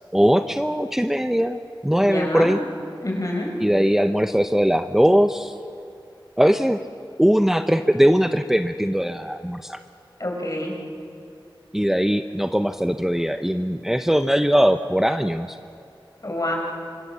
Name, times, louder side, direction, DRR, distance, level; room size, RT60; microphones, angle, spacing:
voice 1, 0.1-2.6 3.6-5.5 6.4-6.8 7.2-9.8 11.7-15.6, equal, 5° right, 7 dB, 0.8 m, -20 dB
voice 2, 2.0-2.5 3.0-3.5 10.2-10.8 16.2-16.5, left 1 dB, 45° left, 0 dB, 6.2 m, -27 dB
26.0 x 24.5 x 7.5 m, 2.4 s
wide cardioid pair, 60°, 9 cm